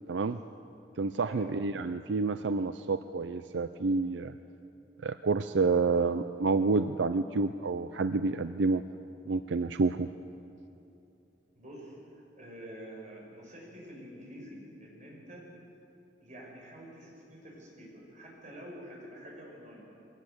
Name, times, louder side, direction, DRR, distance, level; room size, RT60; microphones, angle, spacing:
voice 1, 0.1-0.4 1.0-4.3 5.0-8.8 9.3-10.1, right 4 dB, 85° right, 11 dB, 0.5 m, -29 dB
voice 2, 11.6-15.4 16.2-19.9, equal, 45° right, -3 dB, 6.9 m, -47 dB
22.0 x 19.0 x 8.0 m, 2.8 s
head